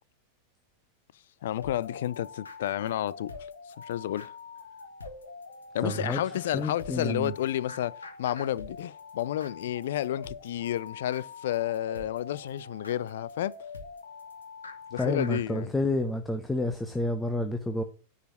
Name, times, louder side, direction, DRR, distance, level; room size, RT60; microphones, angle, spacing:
voice 1, 1.4-3.3 3.7-4.3 5.7-13.6 14.9-15.7, left 12 dB, 55° left, 0.4 m, -31 dB
sound 1, 1.6-15.4, left 4 dB, 75° left, 1.7 m, -44 dB
voice 2, 5.8-6.2 6.5-7.3 15.0-17.8, left 2 dB, 10° left, 1.0 m, -29 dB
10.0 x 4.9 x 7.1 m
figure-of-eight pair, 90°, 0 cm